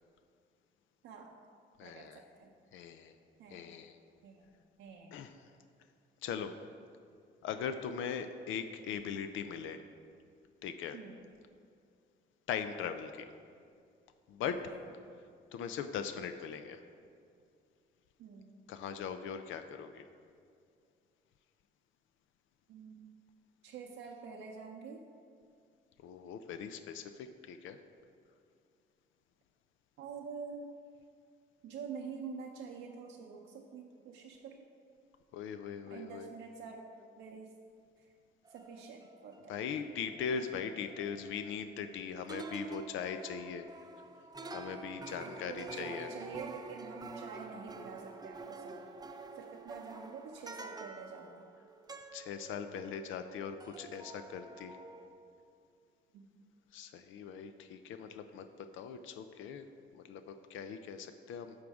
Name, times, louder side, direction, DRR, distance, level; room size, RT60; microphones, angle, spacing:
voice 1, 1.0-1.4 1.8-2.5 3.4-3.7 4.2-4.5 4.8-5.1 10.9-11.3 14.4-14.9 18.2-18.5 22.7-23.1 23.6-25.0 30.0-30.7 31.6-34.7 35.9-36.9 37.2-37.5 38.0-38.1 38.5-39.5 45.1-51.5 56.1-56.3, right 5 dB, 85° right, 0 dB, 0.7 m, -47 dB
voice 2, 1.8-2.2 2.7-3.1 3.5-4.0 5.1-5.3 6.2-6.5 7.4-9.8 10.6-11.0 12.5-13.3 14.3-14.5 15.5-16.8 18.7-20.0 26.0-27.8 35.3-36.3 39.5-43.7 44.5-46.1 52.1-54.8 56.7-58.5 58.7-59.7 59.9-61.6, left 7 dB, 85° left, 9 dB, 0.5 m, -40 dB
sound 1, 38.4-42.0 42.3-53.3 53.6-55.1, right 3 dB, 20° right, 0.6 m, -48 dB
11.0 x 6.2 x 3.6 m, 2.3 s
cardioid pair, 90°, 20 cm